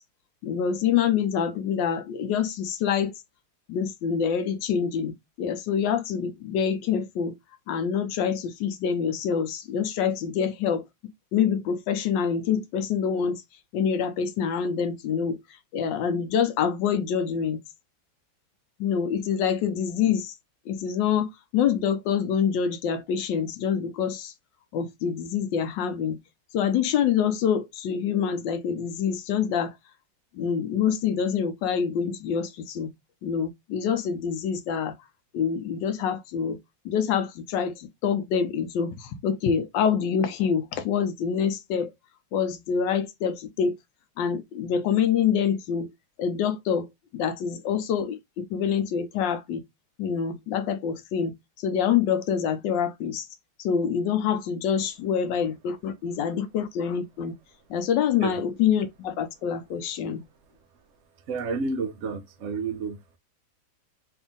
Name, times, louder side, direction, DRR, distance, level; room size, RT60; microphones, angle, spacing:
voice 1, 0.4-3.1 3.7-7.4 7.7-10.8 11.3-13.4 13.7-15.4 15.7-17.6 18.8-20.3 20.7-24.3 24.7-26.2 26.5-29.7 30.3-32.9 33.2-34.9 35.3-36.6 36.8-41.9 42.3-43.8 44.2-45.9 46.2-49.6 50.0-51.3 51.6-53.3 53.6-57.3 57.7-60.2, left 7 dB, 75° left, 1.2 m, -26 dB
voice 2, 61.3-63.0, right 4 dB, 70° right, 0.7 m, -30 dB
3.4 x 2.7 x 3.6 m
omnidirectional pair, 2.1 m